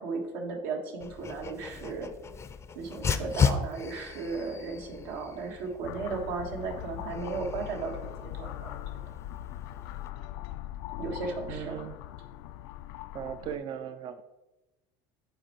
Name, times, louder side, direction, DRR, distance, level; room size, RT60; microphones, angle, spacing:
voice 1, 0.0-2.1 2.7-9.0 11.0-11.9, right 4 dB, 85° right, 2 dB, 1.5 m, -35 dB
Dog, 1.0-10.1, left 6 dB, 25° left, 0.5 m, -35 dB
sound 1, 5.8-13.6, left 13 dB, 90° left, 0.4 m, -41 dB
voice 2, 11.5-12.0 13.1-14.2, right 8 dB, 40° right, 11 dB, 0.4 m, -37 dB
7.8 x 4.4 x 4.3 m, 1.1 s
cardioid pair, 130°, 12 cm